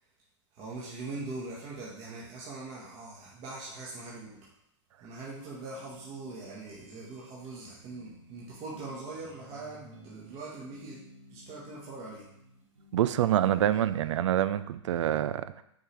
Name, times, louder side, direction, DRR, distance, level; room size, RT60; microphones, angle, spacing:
voice 1, 0.5-4.5 5.0-11.0 11.3-12.3, right 3 dB, 35° right, -5 dB, 1.6 m, -42 dB
sound 1, 5.7-13.7, right 1 dB, 85° right, 1.4 m, -54 dB
voice 2, 12.9-15.6, right 11 dB, 65° right, 14 dB, 0.4 m, -26 dB
6.3 x 4.9 x 3.3 m, 0.78 s
hypercardioid pair, 120°, 16 cm